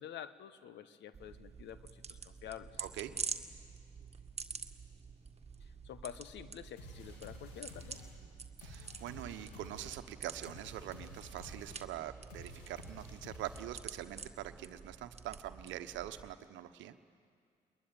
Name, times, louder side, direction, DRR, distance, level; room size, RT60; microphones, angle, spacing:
voice 1, 0.0-2.8 5.6-8.0, left 10 dB, 65° left, 14 dB, 1.2 m, -48 dB
sound 1, 1.1-16.3, right 5 dB, 30° right, 1.7 m, -48 dB
voice 2, 2.8-3.1 8.6-17.0, right 12 dB, 70° right, 10 dB, 1.1 m, -44 dB
sound 2, 6.8-14.0, left 1 dB, 90° left, 3.0 m, -52 dB
22.5 x 21.5 x 9.3 m, 2.3 s
hypercardioid pair, 45°, 20 cm